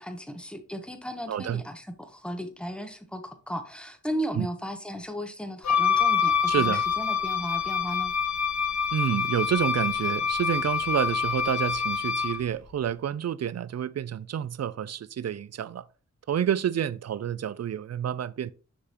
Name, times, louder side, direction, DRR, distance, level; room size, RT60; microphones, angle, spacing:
voice 1, 0.0-8.1, equal, 5° left, 1.1 m, -35 dB
voice 2, 1.3-1.6 4.4-4.5 6.5-6.8 8.9-15.8 16.3-18.5, right 9 dB, 55° right, 0.4 m, -29 dB
Wind instrument woodwind instrument, 5.6-12.4, left 7 dB, 65° left, 0.8 m, -26 dB
6.5 x 5.8 x 2.9 m
cardioid pair, 50°, 31 cm